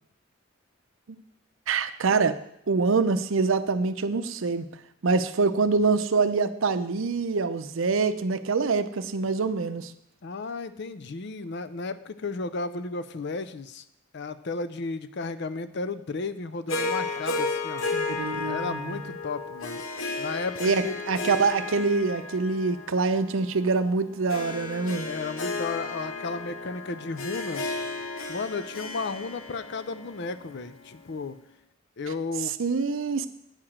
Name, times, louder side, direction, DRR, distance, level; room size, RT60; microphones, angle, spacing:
voice 1, 1.7-2.4 2.7-4.7 5.0-9.9 17.9-19.0 20.6-25.1 32.6-33.3, right 4 dB, 70° right, 12 dB, 0.6 m, -25 dB
voice 2, 10.2-13.8 14.1-17.8 18.4-19.8 20.2-21.0 25.0-27.8 28.3-31.4 32.0-32.6, left 3 dB, 55° left, 12 dB, 0.5 m, -34 dB
Harp, 16.7-31.1, left 3 dB, 80° left, 1.1 m, -34 dB
8.9 x 4.9 x 7.3 m, 0.76 s
head